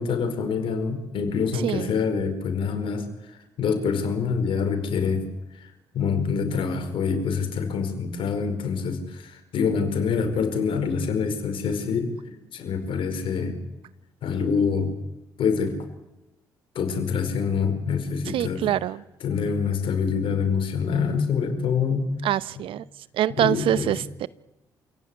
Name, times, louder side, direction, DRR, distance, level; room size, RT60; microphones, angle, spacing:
voice 1, 0.0-3.0 3.6-5.3 5.9-12.1 12.5-13.6 14.2-14.9 15.4-15.8 16.7-18.6 19.2-22.1 23.4-23.9, left 5 dB, 65° left, 7 dB, 5.0 m, -25 dB
voice 2, 1.6-2.0 18.3-19.0 22.2-22.8 23.1-24.3, right 12 dB, 70° right, 19 dB, 0.8 m, -25 dB
28.0 x 17.0 x 9.8 m, 0.97 s
hypercardioid pair, 45°, 10 cm